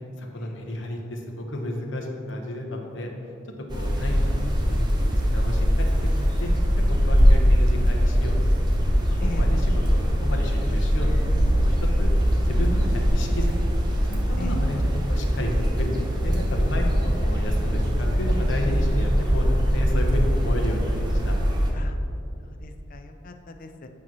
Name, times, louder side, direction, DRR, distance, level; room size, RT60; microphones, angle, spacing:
voice 1, 0.2-3.1 3.7-6.1 6.4-6.5 6.9-8.4 9.2-12.1 12.4-13.5 14.0-14.8 15.1-21.4, left 1 dB, 65° left, 1 dB, 0.9 m, -32 dB
sound 1, 3.7-21.7, equal, 20° right, 0.8 m, -22 dB
voice 2, 22.4-23.9, left 3 dB, 45° left, 6 dB, 0.4 m, -39 dB
8.6 x 3.0 x 6.0 m, 2.6 s
head